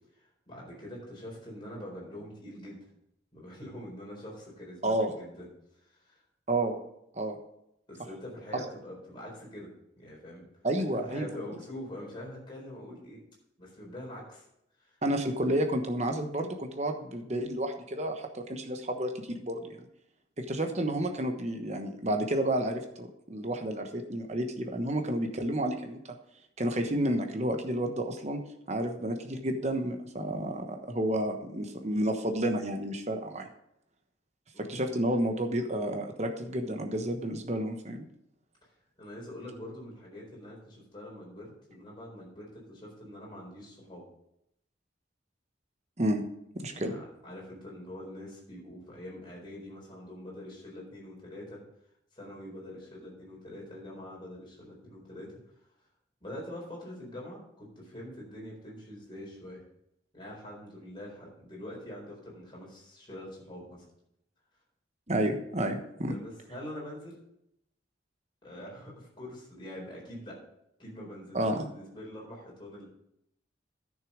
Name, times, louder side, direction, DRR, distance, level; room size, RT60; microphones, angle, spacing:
voice 1, 0.5-2.9 3.3-5.5 5.8-6.2 7.9-9.7 10.0-10.4 10.9-13.2 13.6-14.5 14.8-15.0 34.5-35.0 39.0-44.0 46.7-51.6 52.1-55.3 56.2-59.6 60.1-63.8 66.1-67.2 68.4-70.4 70.8-72.9, left 1 dB, 25° left, -4 dB, 4.3 m, -44 dB
voice 2, 4.8-5.1 6.5-6.8 7.1-7.3 10.6-11.3 15.0-19.8 20.4-26.0 26.6-28.4 28.7-33.5 34.6-38.1 46.0-46.2 46.5-47.0 65.1-66.1 71.3-71.7, right 1 dB, 35° right, 5 dB, 1.1 m, -30 dB
10.5 x 6.5 x 5.1 m, 0.77 s
head